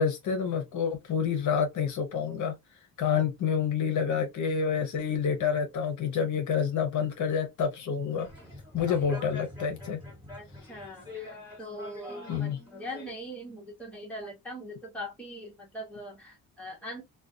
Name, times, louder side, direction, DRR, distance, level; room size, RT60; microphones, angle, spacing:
voice 1, 0.0-2.5 3.0-8.3 8.7-10.0 12.3-12.6, left 7 dB, 55° left, 0.7 m, -28 dB
sound 1, 8.2-13.1, left 2 dB, 15° right, 1.2 m, -44 dB
voice 2, 10.4-17.0, equal, 5° left, 0.9 m, -41 dB
2.4 x 2.2 x 2.4 m
cardioid pair, 145°, 35 cm